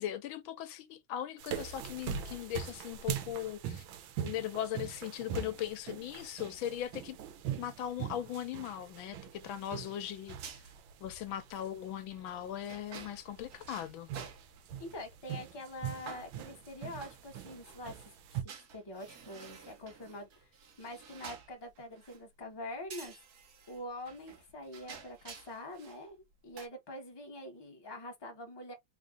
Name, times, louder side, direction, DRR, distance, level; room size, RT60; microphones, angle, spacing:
voice 1, 0.0-3.8 4.2-7.2 7.6-10.4 11.0-14.1, left 11 dB, 85° left, 1.4 m, -39 dB
sound 1, 1.4-18.4, right 9 dB, 90° right, 1.5 m, -42 dB
sound 2, 10.1-15.1 15.5-15.6 15.8-17.8 18.5-22.3 22.9-26.1 26.3-26.7, right 6 dB, 60° right, 1.2 m, -51 dB
voice 2, 14.8-17.9 18.3-20.5 20.8-23.1 23.7-28.7, left 1 dB, 15° left, 1.0 m, -45 dB
3.6 x 2.5 x 3.7 m
omnidirectional pair, 2.2 m